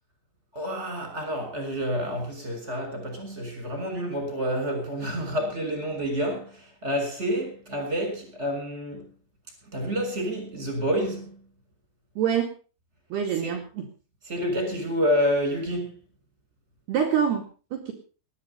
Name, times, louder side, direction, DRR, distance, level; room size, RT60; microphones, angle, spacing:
voice 1, 0.5-9.1 9.7-11.3 13.4-13.5 14.3-15.9, equal, 15° right, 6.6 m, -28 dB
voice 2, 12.2-12.5 13.1-13.9 16.9-17.9, right 8 dB, 65° right, 3.9 m, -26 dB
18.5 x 11.5 x 5.4 m
omnidirectional pair, 5.4 m